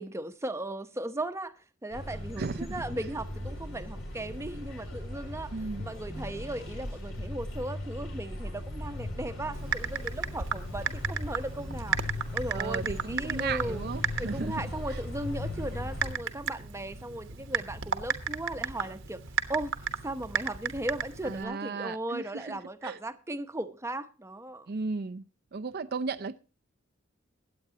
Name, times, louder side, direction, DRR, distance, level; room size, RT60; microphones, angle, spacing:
voice 1, 0.0-5.5 5.8-12.0 12.3-13.9 14.2-19.2 19.5-19.7 20.0-24.7, right 1 dB, 15° right, 0.9 m, -37 dB
sound 1, 1.9-16.1, left 1 dB, 80° left, 4.2 m, -38 dB
voice 2, 2.4-2.8 5.5-5.8 12.5-14.5 14.9-15.0 21.2-23.0 24.7-25.2 25.5-26.4, right 4 dB, 50° right, 0.5 m, -35 dB
Typing, 9.5-21.4, right 6 dB, 70° right, 1.2 m, -35 dB
22.5 x 8.7 x 2.8 m
head